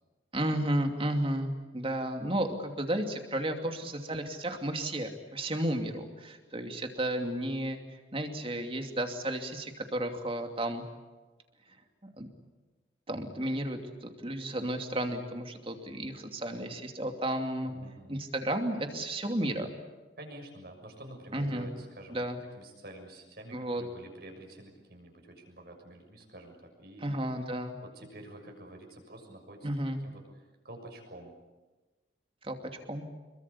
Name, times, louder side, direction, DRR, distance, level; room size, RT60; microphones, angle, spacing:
voice 1, 0.3-7.8 8.1-10.8 12.0-12.3 13.1-17.7 18.1-19.7 21.3-21.7 22.1-22.4 23.5-23.8 27.0-27.8 29.6-30.0 32.4-32.6 32.9-33.1, right 1 dB, 30° right, 5 dB, 2.7 m, -33 dB
voice 2, 17.6-18.2 20.2-22.3 22.5-27.1 27.8-29.7 30.0-30.2 30.6-31.4, right 1 dB, 55° right, 3 dB, 6.6 m, -48 dB
27.0 x 23.0 x 8.6 m, 1.2 s
head